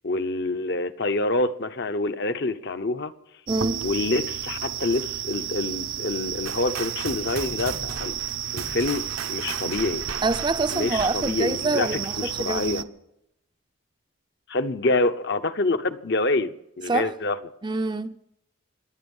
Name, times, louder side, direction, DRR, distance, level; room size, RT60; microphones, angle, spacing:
voice 1, 0.0-3.1 3.8-8.1 8.5-10.0 10.7-12.8 14.5-17.4, left 2 dB, 55° left, 0.9 m, -26 dB
voice 2, 3.5-3.8 10.2-12.9 16.9-17.1 17.6-18.2, right 3 dB, 20° right, 0.5 m, -26 dB
sound 1, 3.5-12.8, right 10 dB, 70° right, 0.7 m, -32 dB
sound 2, 6.5-11.5, right 5 dB, 85° right, 1.3 m, -37 dB
26.0 x 10.0 x 5.5 m
head